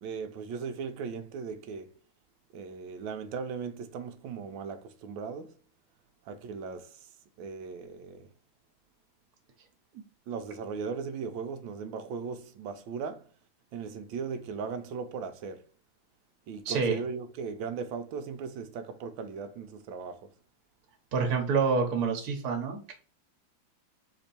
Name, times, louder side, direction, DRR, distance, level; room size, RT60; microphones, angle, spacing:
voice 1, 0.0-1.9 2.5-5.5 6.2-7.1 7.4-8.3 10.3-13.3 13.7-15.6 16.5-20.3, right 5 dB, 80° right, 1.4 m, -38 dB
voice 2, 16.6-17.0 21.1-22.9, right 5 dB, 55° right, 1.5 m, -27 dB
4.3 x 2.9 x 4.2 m
omnidirectional pair, 2.1 m